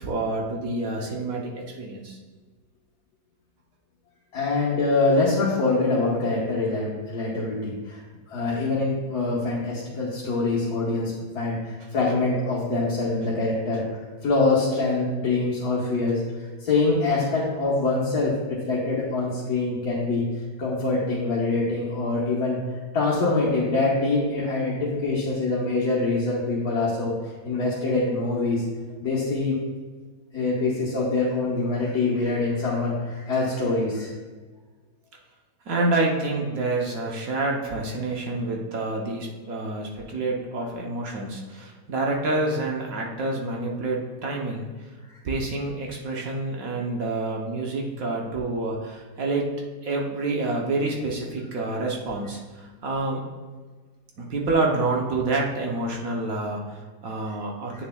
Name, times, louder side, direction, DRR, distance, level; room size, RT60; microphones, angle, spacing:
voice 1, 0.0-2.2 28.9-29.0 35.7-44.7 45.2-49.5 49.8-53.2 54.2-57.8, right 2 dB, 60° right, -1 dB, 1.2 m, -28 dB
voice 2, 4.3-8.0 8.3-13.8 14.2-16.2 16.6-20.3 20.6-22.6 22.9-27.2 27.4-28.6 29.0-29.6 30.3-34.1, left 3 dB, 65° left, -7 dB, 1.6 m, -24 dB
8.9 x 6.7 x 2.3 m, 1.4 s
omnidirectional pair, 1.8 m